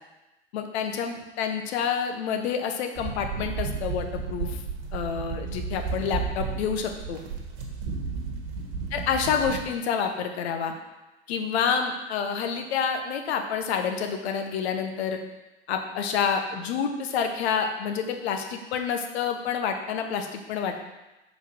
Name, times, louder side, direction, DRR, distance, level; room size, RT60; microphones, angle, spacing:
voice 1, 0.5-4.6 4.9-7.2 8.9-10.7 11.3-15.2 15.7-20.7, left 7 dB, 70° left, 5 dB, 1.0 m, -28 dB
sound 1, 3.0-9.6, right 5 dB, 60° right, 1.6 m, -33 dB
5.6 x 4.8 x 5.5 m, 1.0 s
hypercardioid pair, 85°, 33 cm